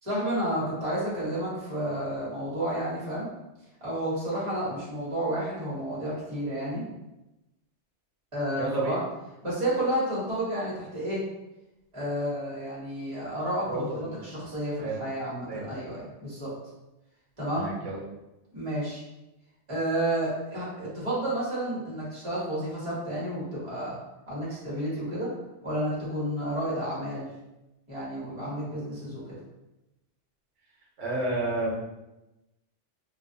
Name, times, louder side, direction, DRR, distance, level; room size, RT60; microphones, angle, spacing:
voice 1, 0.0-3.3 3.8-6.8 8.3-9.0 9.4-11.2 11.9-16.5 17.4-17.7 18.5-19.0 19.7-24.0 24.3-25.3 25.6-27.3 27.9-29.4, right 1 dB, 30° right, -7 dB, 1.0 m, -31 dB
voice 2, 8.6-8.9 13.6-14.2 14.8-15.0 15.5-15.7 17.5-18.0 31.0-31.7, right 2 dB, 75° right, -3 dB, 1.0 m, -31 dB
2.5 x 2.3 x 2.6 m, 0.96 s
omnidirectional pair, 1.2 m